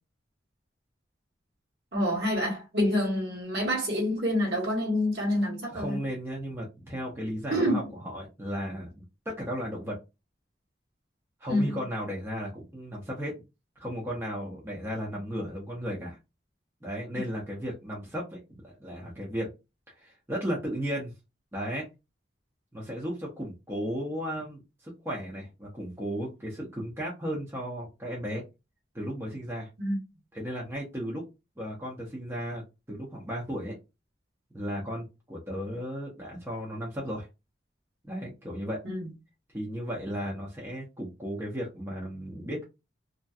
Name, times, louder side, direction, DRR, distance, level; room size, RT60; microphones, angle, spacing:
voice 1, 1.9-6.0 7.5-7.9 11.5-11.8 29.8-30.0 38.8-39.1, equal, 60° right, 1.3 m, -27 dB
voice 2, 5.7-10.0 11.4-13.3 13.8-16.2 16.8-19.5 20.0-21.1 21.5-21.9 22.7-28.4 28.9-29.7 30.3-31.2 31.6-32.6 32.9-33.8 34.5-37.3 38.0-38.8 39.5-42.6, equal, 15° right, 0.7 m, -35 dB
2.6 x 2.2 x 2.2 m
head